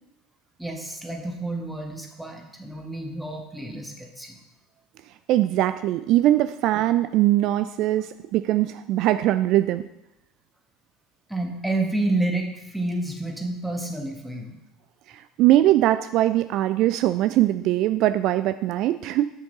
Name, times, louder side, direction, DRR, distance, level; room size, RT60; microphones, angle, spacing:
voice 1, 0.6-4.4 11.3-14.6, right 2 dB, ahead, 2 dB, 1.6 m, -29 dB
voice 2, 5.3-9.8 15.1-19.3, right 14 dB, 55° right, 11 dB, 0.3 m, -21 dB
8.1 x 6.5 x 4.1 m, 0.90 s
figure-of-eight pair, 65°, 0 cm